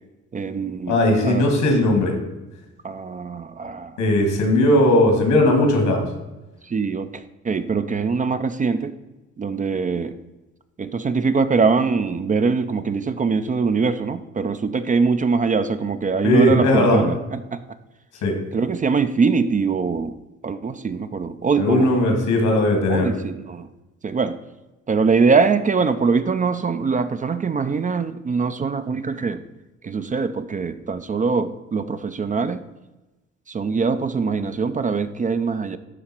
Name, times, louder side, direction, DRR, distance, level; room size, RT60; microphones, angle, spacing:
voice 1, 0.3-1.4 2.8-4.0 6.7-8.9 9.4-10.1 10.8-17.6 18.5-20.1 20.4-21.9 22.9-23.7 24.0-24.4 24.9-29.4 29.8-32.6 33.5-35.8, right 5 dB, 25° right, 11 dB, 0.4 m, -22 dB
voice 2, 0.9-2.1 4.0-6.0 16.2-17.0 18.2-18.4 21.6-23.1, left 1 dB, 80° left, 2 dB, 2.2 m, -18 dB
11.0 x 3.8 x 4.4 m, 1.1 s
cardioid pair, 90°, 30 cm